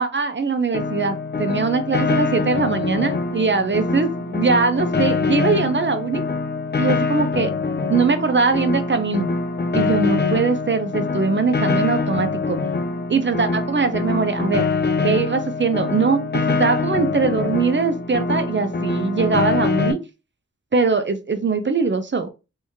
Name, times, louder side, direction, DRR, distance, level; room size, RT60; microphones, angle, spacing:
voice 1, 0.0-6.2 6.8-7.5 7.9-9.3 9.7-12.6 13.1-14.7 15.0-20.0 20.7-22.3, right 4 dB, 40° right, 8 dB, 0.6 m, -21 dB
Piano, 0.7-19.9, left 4 dB, 35° left, 0.5 m, -24 dB
3.0 x 2.7 x 3.5 m, 0.29 s
cardioid pair, 45°, 30 cm